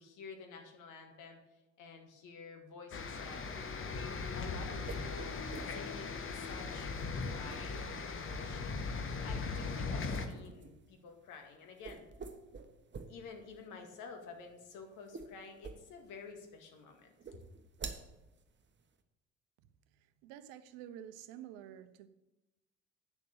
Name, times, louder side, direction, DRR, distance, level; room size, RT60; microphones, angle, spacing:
voice 1, 0.0-1.4 1.8-3.5 4.4-5.4 5.7-6.9 7.3-8.8 9.2-12.1 13.1-17.4, left 5 dB, 60° left, 2.1 m, -50 dB
sound 1, 2.9-10.3, left 4 dB, 35° left, 1.4 m, -39 dB
sound 2, 3.4-19.0, right 4 dB, 30° right, 1.2 m, -51 dB
voice 2, 20.0-22.1, right 10 dB, 70° right, 0.8 m, -50 dB
9.4 x 6.8 x 6.7 m
hypercardioid pair, 55°, 35 cm